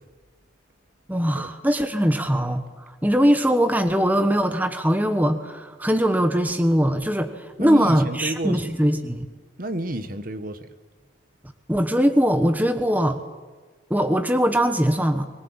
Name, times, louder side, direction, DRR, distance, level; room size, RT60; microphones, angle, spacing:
voice 1, 1.1-2.6 3.0-9.3 11.7-13.2 13.9-15.3, equal, 10° right, 1.2 m, -21 dB
voice 2, 7.6-8.6 9.6-10.6, right 1 dB, 45° right, 1.3 m, -30 dB
23.0 x 20.0 x 8.8 m
head